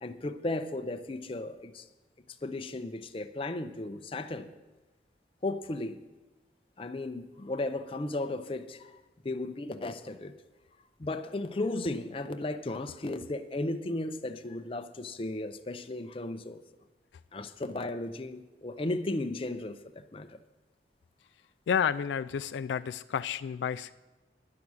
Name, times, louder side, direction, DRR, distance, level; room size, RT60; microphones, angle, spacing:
voice 1, 0.0-1.9 2.4-4.5 5.4-6.0 6.8-9.0 9.2-10.4 11.0-16.6 17.3-20.4, left 2 dB, 30° left, 0.5 m, -35 dB
voice 2, 21.7-23.9, left 7 dB, 85° left, 0.3 m, -30 dB
10.5 x 8.4 x 6.2 m
head